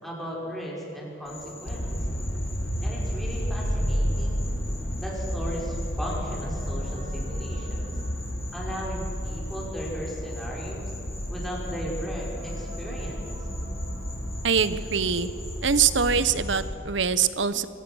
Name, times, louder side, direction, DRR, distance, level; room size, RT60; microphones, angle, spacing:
voice 1, 0.0-1.9 2.8-4.5 5.0-8.0 8.5-10.9 11.3-13.3, equal, ahead, -4 dB, 5.7 m, -36 dB
Insect, 1.2-16.7, left 2 dB, 15° left, 3.5 m, -45 dB
sound 1, 1.7-16.7, equal, 70° left, 6.2 m, -31 dB
sound 2, 5.6-15.5, left 1 dB, 45° right, 4.6 m, -48 dB
voice 2, 14.4-15.3 15.6-17.7, right 6 dB, 70° right, 14 dB, 1.0 m, -23 dB
24.5 x 19.5 x 6.4 m, 3.0 s
head